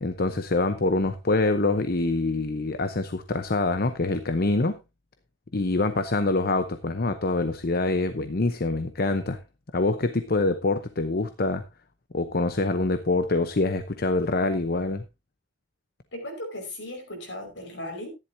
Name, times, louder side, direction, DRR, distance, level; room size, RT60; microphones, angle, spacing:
voice 1, 0.0-4.8 5.5-9.4 9.7-11.6 12.1-15.0, left 2 dB, 50° left, 0.8 m, -25 dB
voice 2, 16.1-18.1, left 1 dB, 70° left, 5.3 m, -36 dB
13.5 x 11.0 x 2.7 m
head